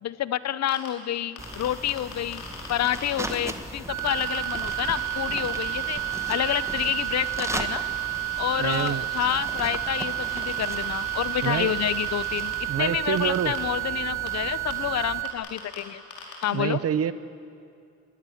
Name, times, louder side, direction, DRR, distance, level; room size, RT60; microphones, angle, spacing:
voice 1, 0.0-6.0 6.3-7.8 8.4-16.0 16.4-16.8, left 11 dB, 60° left, 16 dB, 0.8 m, -28 dB
sound 1, 0.7-0.9 1.4-3.4 4.0-12.5 13.2-13.6 14.3-14.4 14.7-14.8 15.2-15.8 16.1-16.4, left 4 dB, 75° left, 4.7 m, -41 dB
sound 2, 1.4-15.2, right 1 dB, 10° right, 1.4 m, -39 dB
sound 3, 3.9-15.3, right 22 dB, 85° right, 1.6 m, -31 dB
voice 2, 8.6-9.0 11.4-11.7 12.7-13.5 16.5-17.1, right 9 dB, 50° right, 15 dB, 0.9 m, -26 dB
23.0 x 13.5 x 9.8 m, 2.4 s
cardioid pair, 90°, 30 cm